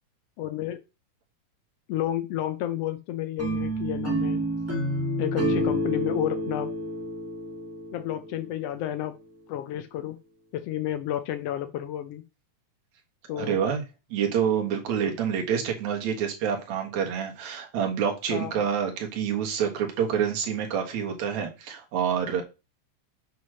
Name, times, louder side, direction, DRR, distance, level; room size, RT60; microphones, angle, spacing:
voice 1, 0.4-0.8 1.9-4.4 5.2-6.7 7.9-9.1 9.5-10.2 10.5-12.2 13.3-13.6 18.3-18.5, left 12 dB, 85° left, 1.3 m, -31 dB
sound 1, 3.4-8.5, equal, 5° right, 1.1 m, -29 dB
voice 2, 13.4-13.8 14.1-22.4, right 8 dB, 65° right, 2.8 m, -27 dB
8.1 x 3.2 x 6.2 m
omnidirectional pair, 3.5 m